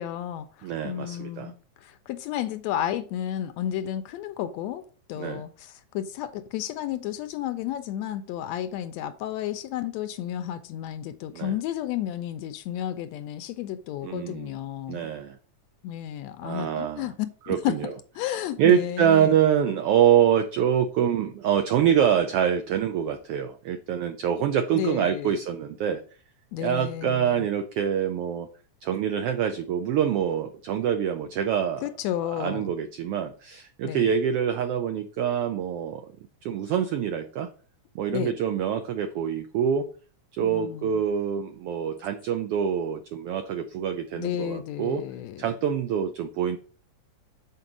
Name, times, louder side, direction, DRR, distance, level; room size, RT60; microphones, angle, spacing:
voice 1, 0.0-1.5 1.8-15.1 15.8-17.8 18.2-19.4 24.7-25.4 26.5-27.5 31.8-32.7 33.8-34.1 38.1-38.4 40.4-40.9 44.1-45.5, left 11 dB, 80° left, 1.7 m, -32 dB
voice 2, 0.6-1.5 5.2-5.4 11.3-11.5 14.0-14.5 14.9-15.4 16.4-17.1 17.5-17.9 18.6-26.0 26.6-28.5 28.8-31.8 32.4-36.0 36.4-37.5 37.9-39.9 40.3-45.0 45.4-46.6, right 9 dB, 85° right, 1.3 m, -25 dB
6.6 x 4.4 x 6.0 m
omnidirectional pair, 3.3 m